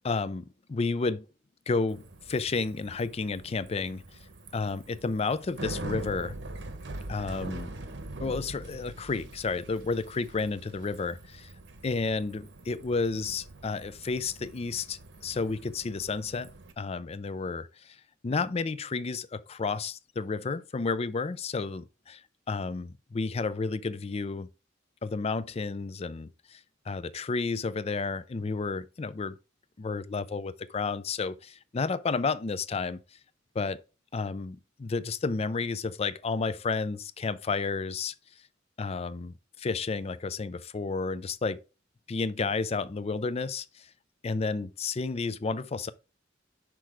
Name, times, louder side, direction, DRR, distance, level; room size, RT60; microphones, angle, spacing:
voice 1, 0.0-1.3 1.7-4.0 4.5-6.4 7.1-7.7 8.2-11.5 11.8-16.5 16.8-18.0 18.2-24.5 25.0-26.6 26.9-29.4 29.8-33.0 33.5-33.8 34.1-38.1 38.8-41.6 42.1-43.9 44.2-45.9, left 4 dB, 30° left, 0.4 m, -31 dB
Bicycle, 1.9-16.7, right 2 dB, 65° right, 0.9 m, -43 dB
6.1 x 4.6 x 4.8 m
head